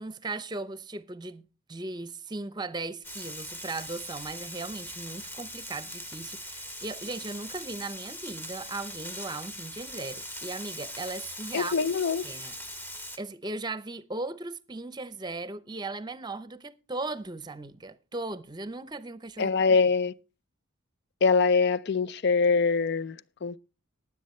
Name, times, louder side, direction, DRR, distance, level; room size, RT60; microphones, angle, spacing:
voice 1, 0.0-11.7 12.2-19.5, right 3 dB, 20° right, 0.7 m, -37 dB
Frying (food), 3.0-13.2, equal, 10° left, 0.9 m, -41 dB
voice 2, 11.5-12.2 19.4-20.1 21.2-23.6, left 4 dB, 55° left, 0.5 m, -24 dB
19.5 x 7.6 x 3.2 m
head